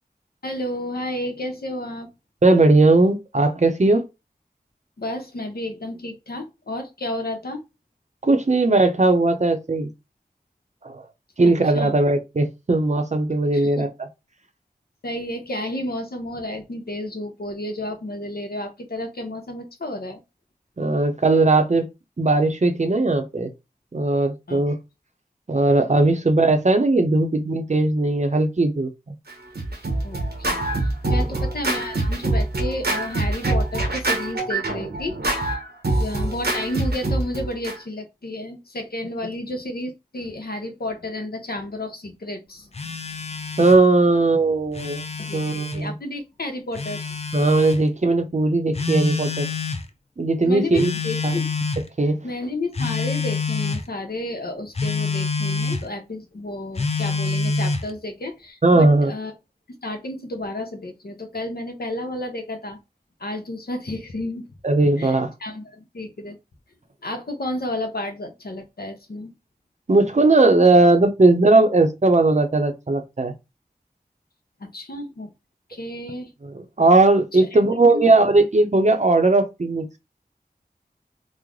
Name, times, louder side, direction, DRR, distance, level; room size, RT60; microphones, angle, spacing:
voice 1, 0.4-2.1 5.0-7.6 11.7-11.9 13.5-13.9 15.0-20.2 24.5-24.6 30.0-35.6 35.9-42.7 45.2-47.2 50.4-51.5 52.2-59.3 59.8-62.8 63.2-64.5 65.0-66.4 67.0-69.3 74.6-75.3 75.7-76.3 77.3-77.6 77.9-78.0, left 1 dB, 75° left, 0.8 m, -31 dB
voice 2, 2.4-4.1 8.2-9.9 10.8-11.0 11.4-13.9 20.8-21.9 22.2-23.5 23.9-24.8 25.5-28.9 31.3-31.4 43.6-45.0 45.3-45.9 47.3-49.5 50.2-50.9 51.2-51.4 52.0-52.2 58.6-59.1 64.6-65.3 69.9-73.3 76.4-80.0, right 2 dB, 45° right, 0.6 m, -18 dB
Scratching (performance technique), 29.3-37.7, right 2 dB, 90° right, 0.9 m, -24 dB
Telephone, 42.7-43.8 44.6-45.8 46.7-47.8 48.7-49.8 50.7-51.9 52.7-53.8 54.7-55.8 56.7-57.9, left 4 dB, 40° left, 0.5 m, -26 dB
3.1 x 2.1 x 3.6 m
wide cardioid pair, 45°, 16 cm